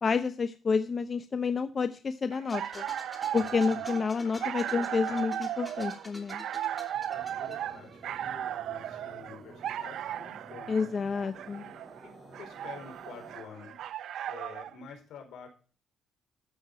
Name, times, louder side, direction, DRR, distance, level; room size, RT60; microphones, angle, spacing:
voice 1, 0.0-2.8 3.3-6.4 10.7-11.7, left 5 dB, 40° left, 10 dB, 0.8 m, -29 dB
sound 1, 2.3-14.8, right 11 dB, 75° right, 0.5 m, -36 dB
sound 2, 2.5-8.2, left 1 dB, 5° left, 2.9 m, -49 dB
voice 2, 3.3-5.2 6.7-10.7 12.0-15.5, left 7 dB, 80° left, 3 dB, 4.7 m, -49 dB
sound 3, 6.8-14.2, right 2 dB, 30° right, 5.6 m, -52 dB
13.5 x 6.6 x 5.6 m, 0.38 s
cardioid pair, 90°, 0 cm